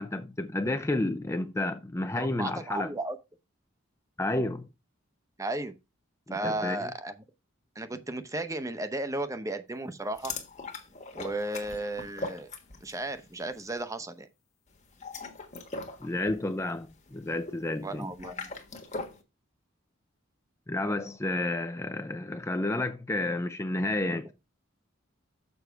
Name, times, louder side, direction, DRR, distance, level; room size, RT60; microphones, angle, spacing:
voice 1, 0.0-2.9 4.2-4.7 6.3-6.9 16.0-18.1 20.7-24.3, left 2 dB, 15° left, 0.4 m, -31 dB
voice 2, 2.2-3.2 5.4-5.7 6.3-7.1 7.8-10.3 11.1-12.5 12.8-14.3 17.8-18.5 24.1-24.2, right 2 dB, 15° right, 0.8 m, -34 dB
sound 1, 10.2-13.1 13.4-13.7 14.8-19.2, left 3 dB, 35° left, 1.4 m, -40 dB
7.0 x 5.6 x 4.6 m
head